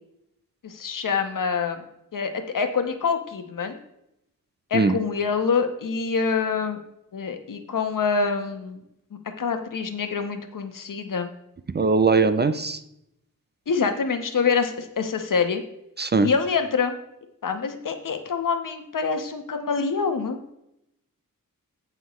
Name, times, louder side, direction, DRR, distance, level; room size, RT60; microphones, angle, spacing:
voice 1, 0.6-1.8 2.1-3.8 4.7-6.8 7.1-8.8 9.4-11.3 13.7-15.6 16.2-17.0 17.4-20.4, left 5 dB, 65° left, 7 dB, 1.2 m, -26 dB
voice 2, 11.7-12.8 16.0-16.3, right 4 dB, 30° right, 11 dB, 0.5 m, -20 dB
16.5 x 5.6 x 3.1 m, 0.80 s
wide cardioid pair, 135°, 35 cm